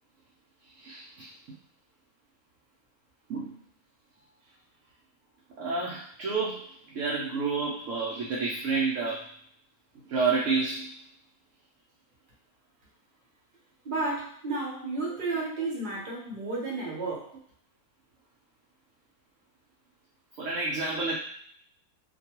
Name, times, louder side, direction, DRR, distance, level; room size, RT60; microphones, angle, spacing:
voice 1, 0.8-1.3 3.3-3.6 5.6-6.7 6.9-9.3 10.1-10.9 20.4-21.1, right 4 dB, 65° right, -4 dB, 0.8 m, -29 dB
voice 2, 13.8-17.4, right 3 dB, 40° right, -5 dB, 0.9 m, -32 dB
2.6 x 2.2 x 2.8 m, 0.62 s
omnidirectional pair, 1.6 m